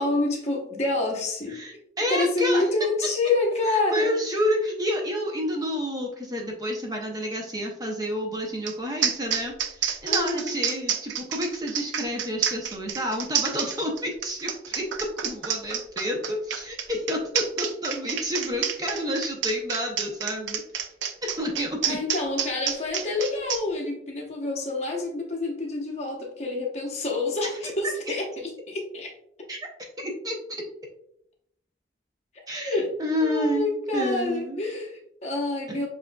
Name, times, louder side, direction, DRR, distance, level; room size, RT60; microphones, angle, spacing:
voice 1, 0.0-1.6 2.1-4.1 10.1-10.5 21.8-29.1 32.6-32.9 33.2-35.9, left 2 dB, 35° left, -1 dB, 0.9 m, -27 dB
voice 2, 1.5-2.6 3.6-20.9 21.2-22.0 27.6-27.7 29.5-29.6 30.0-30.4 32.5-34.6, equal, 20° right, 1 dB, 0.6 m, -29 dB
sound 1, 8.7-8.8 9.0-23.6, right 8 dB, 90° right, 0.4 m, -29 dB
7.3 x 2.6 x 2.2 m, 0.73 s
head